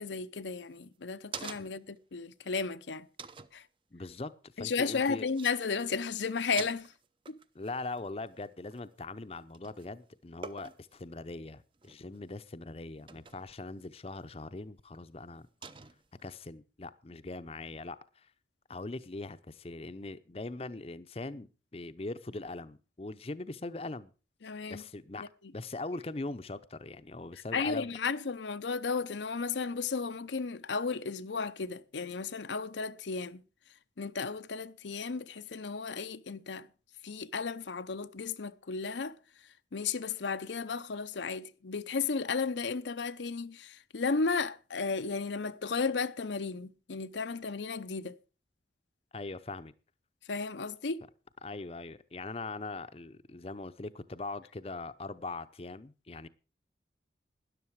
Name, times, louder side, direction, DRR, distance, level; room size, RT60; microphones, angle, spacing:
voice 1, 0.0-3.1 3.5-3.6 4.6-6.9 7.3-7.4 24.4-24.8 25.2-25.3 27.5-33.4 34.0-36.7 37.0-39.2 39.7-48.2 50.3-51.0, left 4 dB, 90° left, 0.7 m, -34 dB
sound 1, 0.6-2.0 2.4-2.5 3.2-3.6 5.0-5.1 5.3-5.6 5.8-6.1 6.4-9.2 9.5-9.9 10.4-11.0 11.7-12.2 13.1-13.5 14.2-14.3 15.6-16.3, right 5 dB, 30° right, 0.6 m, -46 dB
voice 2, 3.9-4.3 4.6-5.3 7.5-15.5 16.2-18.3 18.7-21.5 21.7-24.1 24.7-25.3 25.5-27.9 49.1-49.7 51.4-56.3, left 2 dB, 35° left, 0.6 m, -41 dB
13.0 x 10.5 x 4.6 m
head